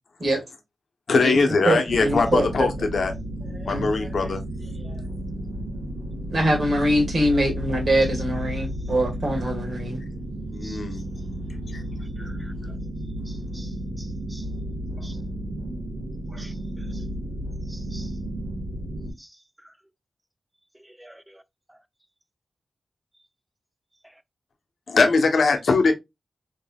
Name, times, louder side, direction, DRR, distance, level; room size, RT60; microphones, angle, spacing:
voice 1, 1.1-3.1 3.7-4.4 10.5-11.0 11.5-11.8 24.9-25.9, left 4 dB, 75° left, 0.8 m, -21 dB
voice 2, 1.7-2.7 3.7-3.9 6.3-10.0, right 1 dB, 60° right, 1.7 m, -23 dB
sound 1, 1.9-19.1, right 1 dB, 85° right, 1.4 m, -32 dB
voice 3, 3.5-4.4 4.8-5.0 10.6-10.8 12.2-12.5 13.3-13.7 14.0-14.4 15.0-15.2 16.3-16.5 17.7-18.1 19.2-19.3 20.8-21.4, right 1 dB, 10° right, 0.3 m, -46 dB
3.4 x 3.2 x 2.2 m
wide cardioid pair, 90°, 0 cm